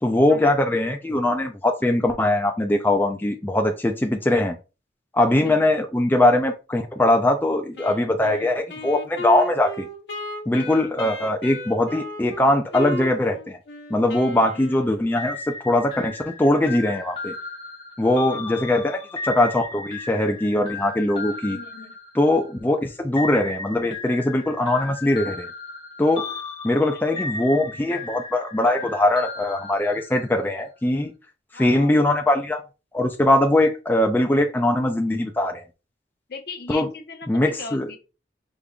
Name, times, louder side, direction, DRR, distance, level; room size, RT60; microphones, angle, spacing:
voice 1, 0.0-4.6 5.1-9.9 10.5-13.6 13.9-17.3 18.0-21.6 22.1-25.5 26.0-26.3 26.6-31.1 31.5-32.6 32.9-35.6 36.7-36.9 37.3-37.9, left 1 dB, 10° left, 0.4 m, -21 dB
voice 2, 5.4-5.7 10.9-11.2 18.3-18.6 21.4-21.9 26.9-27.2 31.5-31.9 36.3-38.0, left 4 dB, 60° left, 0.9 m, -38 dB
Wind instrument woodwind instrument, 7.8-15.2, left 2 dB, 85° left, 0.9 m, -35 dB
sound 1, 15.2-22.6 23.2-30.4, left 3 dB, 30° left, 1.7 m, -35 dB
5.1 x 3.4 x 2.4 m
head